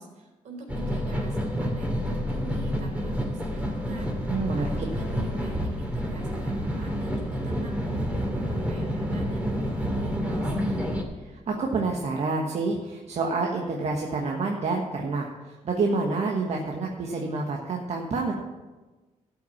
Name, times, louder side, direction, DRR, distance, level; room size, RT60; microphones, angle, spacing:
voice 1, 0.0-11.0, right 2 dB, 75° right, 0 dB, 3.7 m, -44 dB
sound 1, 0.7-11.0, equal, 10° right, 2.4 m, -29 dB
voice 2, 4.3-4.7 11.5-18.3, right 3 dB, 60° right, 0 dB, 1.4 m, -28 dB
12.5 x 6.0 x 7.2 m, 1.2 s
cardioid pair, 95°, 13 cm